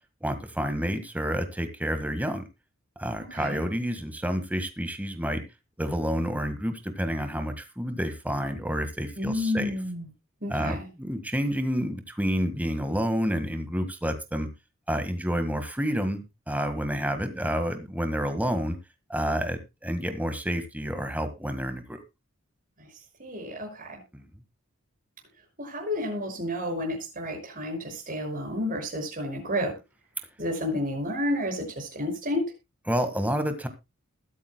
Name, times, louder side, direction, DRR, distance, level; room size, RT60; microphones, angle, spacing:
voice 1, 0.2-2.4 3.0-5.4 5.8-9.7 10.5-14.5 14.9-18.8 19.1-22.0 24.1-24.2 32.9-33.7, equal, 5° right, 8 dB, 1.6 m, -29 dB
voice 2, 3.3-3.6 9.2-10.1 10.4-10.9 22.8-22.9 23.2-24.0 25.6-29.8 30.4-32.5, left 1 dB, 40° right, 1 dB, 6.2 m, -31 dB
21.0 x 9.1 x 2.2 m, 0.25 s
head